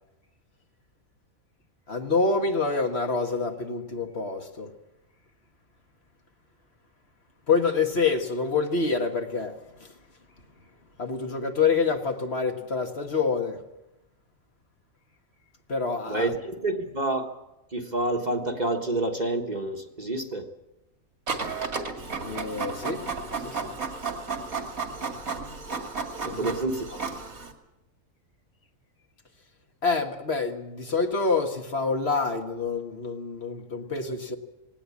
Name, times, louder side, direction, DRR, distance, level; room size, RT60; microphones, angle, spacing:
voice 1, 1.9-4.7 7.5-9.5 11.0-13.6 15.7-16.3 22.2-23.0 23.4-23.8 26.3-26.5 29.8-34.4, left 4 dB, 50° left, 4 dB, 1.8 m, -27 dB
voice 2, 16.1-17.3 17.7-20.4 26.2-27.0, right 2 dB, 30° right, 4 dB, 1.4 m, -28 dB
Printer, 21.3-27.5, right 4 dB, 75° right, 2.7 m, -33 dB
18.5 x 18.5 x 8.4 m, 0.98 s
omnidirectional pair, 1.5 m